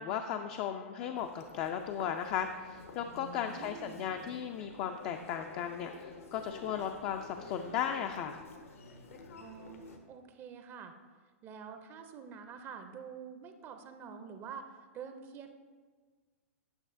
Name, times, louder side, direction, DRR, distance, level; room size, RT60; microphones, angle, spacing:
voice 1, 0.0-8.4, left 8 dB, 40° left, 6 dB, 0.4 m, -36 dB
Human voice, 1.2-10.0, left 3 dB, 75° left, 0.9 m, -50 dB
voice 2, 3.4-4.0 9.4-10.9 11.4-15.5, right 6 dB, 30° right, 7 dB, 0.5 m, -47 dB
8.7 x 6.0 x 2.6 m, 1.5 s
hypercardioid pair, 115°, 8 cm